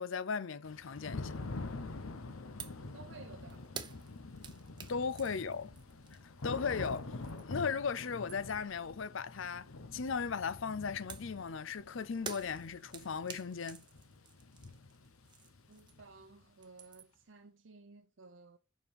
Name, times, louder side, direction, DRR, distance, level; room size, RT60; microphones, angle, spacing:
voice 1, 0.0-1.3 4.9-5.7 6.4-7.1 7.4-13.8, left 5 dB, 65° left, 0.5 m, -37 dB
Thunder / Rain, 0.6-16.4, left 3 dB, 80° left, 0.9 m, -46 dB
sound 1, 2.6-2.9 3.2-7.6 8.0-8.7 11.1-16.2 16.5-17.2, right 6 dB, 20° right, 0.8 m, -50 dB
voice 2, 2.9-3.7 15.7-18.6, right 4 dB, 60° right, 0.7 m, -55 dB
7.2 x 5.3 x 5.2 m
head